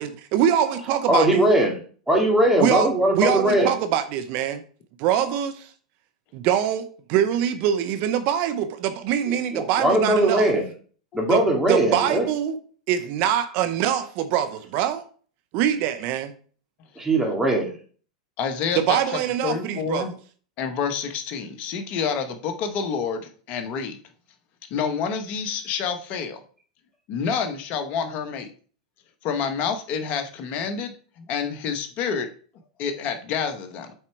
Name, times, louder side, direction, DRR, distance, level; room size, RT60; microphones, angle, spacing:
voice 1, 0.0-1.3 2.6-2.9 3.2-4.6 5.0-5.5 6.3-10.4 11.3-11.4 11.7-12.5 12.9-15.0 15.5-16.3 18.9-20.0, right 10 dB, 50° right, 10 dB, 0.7 m, -23 dB
voice 2, 0.5-1.8 2.1-3.7 5.2-5.4 9.2-10.7 11.1-12.3 17.0-17.7, right 1 dB, 10° right, 0 dB, 2.4 m, -21 dB
voice 3, 18.4-20.1 20.6-24.0 24.7-26.4 27.1-28.5 29.2-32.3 32.8-33.9, left 6 dB, 45° left, 7 dB, 1.1 m, -28 dB
7.9 x 4.3 x 4.6 m, 0.43 s
hypercardioid pair, 105°, 3 cm